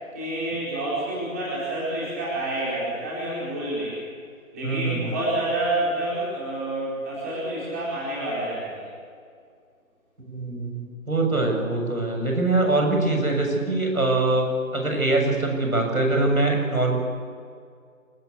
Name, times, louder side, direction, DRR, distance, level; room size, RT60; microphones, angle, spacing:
voice 1, 0.1-4.0 4.5-8.9, right 1 dB, 10° right, -7 dB, 4.5 m, -28 dB
voice 2, 4.6-5.2 10.3-14.5 14.7-17.0, right 2 dB, 90° right, 2 dB, 7.6 m, -23 dB
28.0 x 14.0 x 8.3 m, 2.2 s
figure-of-eight pair, 170°, 42 cm